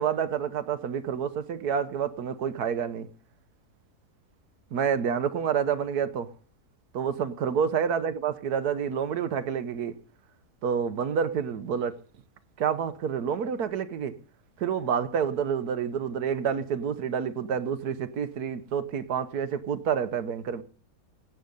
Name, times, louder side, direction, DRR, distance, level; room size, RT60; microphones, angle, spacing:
voice 1, 0.0-3.1 4.7-6.3 6.9-9.9 10.6-12.0 12.6-14.1 14.6-20.6, right 7 dB, 85° right, 1.5 m, -28 dB
17.0 x 9.0 x 5.3 m
omnidirectional pair, 1.6 m